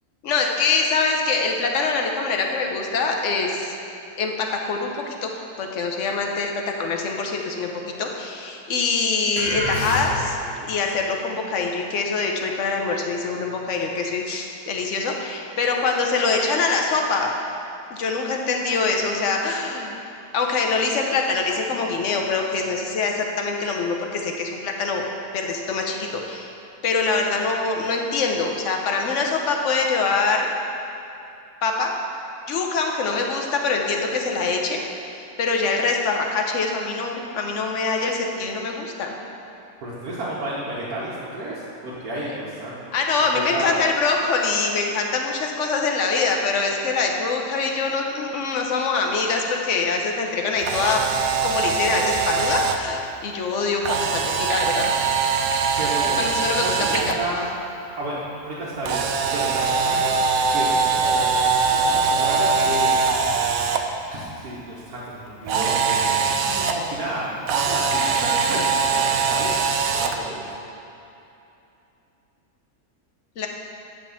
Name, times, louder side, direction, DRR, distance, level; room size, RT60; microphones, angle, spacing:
voice 1, 0.2-3.7 4.2-6.5 6.8-7.7 8.0-10.4 10.7-17.3 17.9-20.0 20.3-25.0 25.3-26.5 26.8-30.5 31.6-31.9 32.5-34.8 35.4-39.2 42.9-51.0 51.4-54.9 56.2-57.1 73.4-73.5, left 4 dB, 60° left, 1 dB, 1.1 m, -24 dB
sound 1, 9.4-10.5, left 1 dB, 80° left, 1.7 m, -27 dB
voice 2, 39.8-42.9 43.4-43.8 55.8-56.3 56.6-57.5 58.0-59.1 59.3-60.1 60.5-61.3 61.6-63.1 64.1-69.7 70.0-70.5, right 1 dB, 90° right, -8 dB, 1.7 m, -31 dB
Camera, 50.6-52.8 53.8-57.1 58.8-63.8 65.5-66.7 67.5-70.2, right 5 dB, 70° right, 1.0 m, -22 dB
10.5 x 3.6 x 7.1 m, 2.8 s
omnidirectional pair, 1.5 m